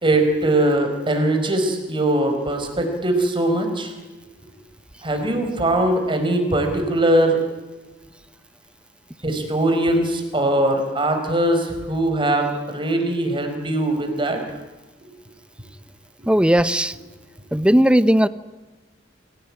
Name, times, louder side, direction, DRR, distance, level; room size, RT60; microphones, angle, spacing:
voice 1, 0.0-3.9 5.0-7.4 9.2-14.4 16.2-16.3, right 1 dB, 25° right, 5 dB, 4.7 m, -21 dB
voice 2, 16.3-17.0 17.5-18.3, equal, 5° right, 15 dB, 0.7 m, -16 dB
27.0 x 17.0 x 9.7 m, 1.2 s
head